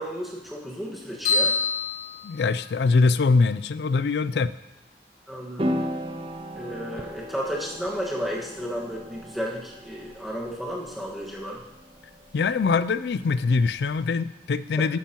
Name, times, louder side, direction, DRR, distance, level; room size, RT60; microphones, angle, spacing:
voice 1, 0.0-1.6 5.3-5.8 6.5-11.6 14.8-14.9, equal, ahead, -4 dB, 1.5 m, -33 dB
sound 1, 1.2-3.0, left 4 dB, 55° left, 3.6 m, -26 dB
voice 2, 2.2-4.5 12.3-15.0, left 4 dB, 75° left, 16 dB, 0.4 m, -23 dB
sound 2, 5.6-14.0, equal, 30° right, 0.7 m, -36 dB
12.5 x 9.0 x 3.0 m, 0.99 s
head